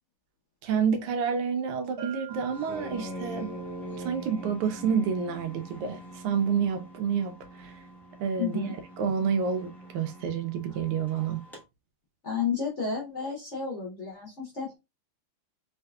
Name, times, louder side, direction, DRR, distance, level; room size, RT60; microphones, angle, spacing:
voice 1, 0.6-3.5 4.0-7.3 7.6-7.7 8.2-8.6 9.0-11.4, right 6 dB, 85° right, 1.5 m, -28 dB
Bell, 2.0-3.6, right 7 dB, 50° right, 0.8 m, -45 dB
sound 1, 2.3-11.6, right 1 dB, ahead, 0.4 m, -43 dB
voice 2, 8.4-8.8 12.2-14.7, left 5 dB, 50° left, 0.8 m, -31 dB
3.6 x 3.3 x 2.3 m
omnidirectional pair, 2.4 m